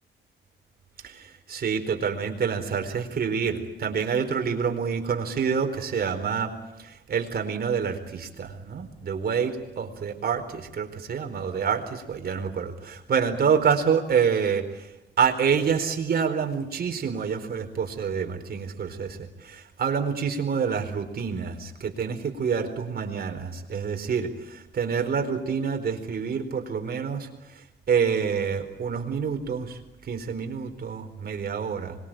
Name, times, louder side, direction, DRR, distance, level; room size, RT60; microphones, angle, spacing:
voice 1, 1.0-6.5 6.8-14.9 15.2-32.0, right 6 dB, 50° right, 5 dB, 4.4 m, -27 dB
25.5 x 22.5 x 9.1 m, 0.96 s
cardioid pair, 90°, 20 cm